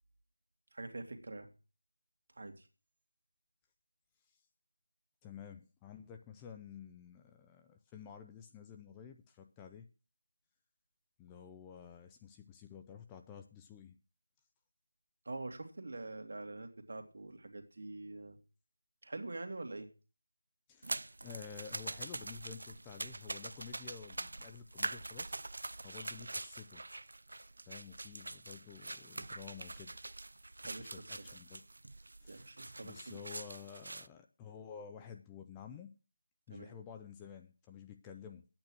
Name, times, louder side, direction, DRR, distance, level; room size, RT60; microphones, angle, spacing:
voice 1, 0.7-1.5 2.4-2.7 15.2-18.4 19.0-19.9 30.6-31.4 32.3-33.2 36.5-36.8, right 2 dB, 55° right, 6 dB, 2.2 m, -45 dB
voice 2, 5.2-9.9 11.2-14.0 20.7-25.4 25.8-26.8 27.7-30.0 30.6-31.6 32.2-32.5 32.8-36.0 36.5-38.5, left 7 dB, 10° left, 5 dB, 0.5 m, -51 dB
sound 1, 20.8-34.1, right 2 dB, 70° right, 0.5 m, -44 dB
10.5 x 8.9 x 6.1 m, 0.34 s
figure-of-eight pair, 175°, 0 cm